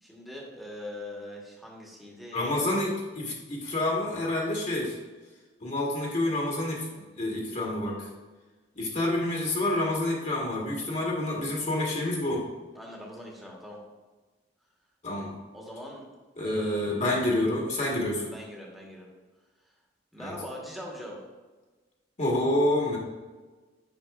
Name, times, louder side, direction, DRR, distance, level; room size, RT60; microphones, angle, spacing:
voice 1, 0.0-2.7 12.7-13.8 15.5-16.1 16.4-17.2 18.3-19.1 20.1-21.2, left 1 dB, ahead, -2 dB, 1.2 m, -41 dB
voice 2, 2.3-5.0 5.6-6.9 7.2-8.1 8.7-12.4 15.0-15.3 16.4-18.3 20.2-20.3 22.2-23.0, left 1 dB, 40° left, -2 dB, 1.2 m, -28 dB
7.9 x 5.6 x 2.4 m, 1.3 s
head